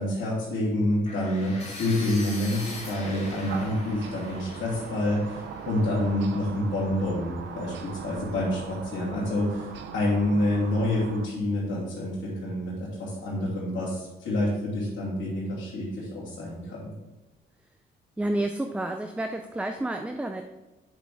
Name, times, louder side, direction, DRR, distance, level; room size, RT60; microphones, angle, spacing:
voice 1, 0.0-9.7 9.9-16.9, left 1 dB, 80° left, -10 dB, 2.7 m, -28 dB
sound 1, 1.1-7.0, left 2 dB, 35° left, 2.4 m, -43 dB
sound 2, 2.5-11.3, right 6 dB, 70° right, 0.7 m, -40 dB
voice 2, 18.2-20.5, right 1 dB, 5° right, 6 dB, 0.4 m, -30 dB
7.2 x 6.5 x 3.6 m, 1.1 s
cardioid pair, 90°, 20 cm